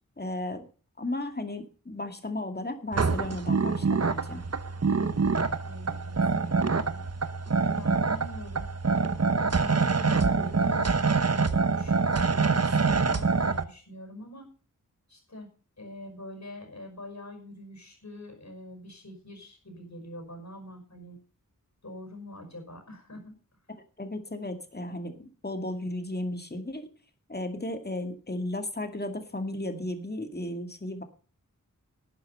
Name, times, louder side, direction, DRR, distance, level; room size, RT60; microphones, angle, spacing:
voice 1, 0.2-0.6 1.0-4.4 24.0-26.9 27.3-31.0, left 1 dB, 30° left, 6 dB, 2.2 m, -34 dB
sound 1, 2.9-13.6, right 4 dB, 50° right, 1.0 m, -25 dB
voice 2, 5.0-7.1 7.7-8.7 9.2-14.5 15.1-15.5 15.8-21.2 21.8-23.3, left 1 dB, 55° left, 4 dB, 5.7 m, -44 dB
12.0 x 9.4 x 5.5 m, 0.38 s
wide cardioid pair, 65°, 32 cm